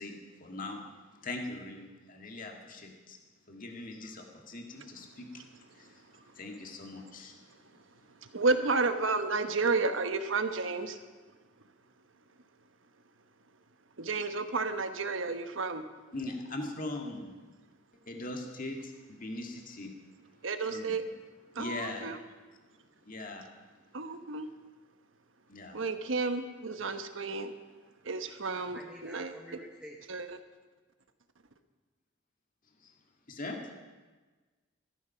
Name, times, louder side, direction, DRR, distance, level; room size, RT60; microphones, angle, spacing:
voice 1, 0.0-3.2 3.5-7.4 16.1-17.4 18.1-20.0 20.7-21.0 21.5-22.1 23.0-23.5 25.5-25.8 32.8-32.9 33.3-33.6, left 2 dB, 45° left, 2 dB, 2.0 m, -41 dB
voice 2, 8.3-11.0 14.0-15.8 20.4-21.0 21.5-22.2 23.9-24.5 25.7-27.5 28.0-29.3 30.1-30.4, right 3 dB, 80° right, 9 dB, 1.1 m, -31 dB
voice 3, 28.5-30.0, equal, 5° right, 0 dB, 1.1 m, -49 dB
15.0 x 13.5 x 5.8 m, 1.3 s
head